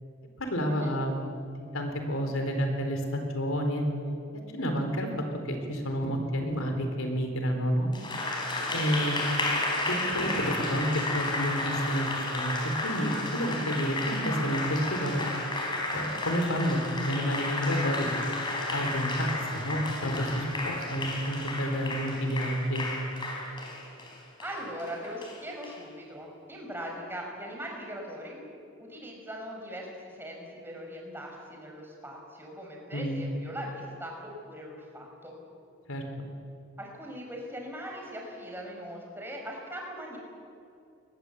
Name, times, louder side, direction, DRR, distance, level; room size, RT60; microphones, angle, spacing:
voice 1, 0.4-1.1 1.4-3.8 4.5-5.1 5.4-7.9 8.7-9.2 9.9-10.9 11.1-12.5 12.8-15.2 15.9-18.1 18.7-22.8 32.9-33.2 35.9-36.0, equal, 90° left, 4 dB, 4.2 m, -30 dB
Applause, 7.9-25.8, left 2 dB, 20° left, 3.9 m, -32 dB
voice 2, 24.4-28.4 28.8-35.3 36.8-40.2, equal, 10° right, 0 dB, 5.1 m, -40 dB
22.5 x 20.0 x 8.3 m, 2.6 s
head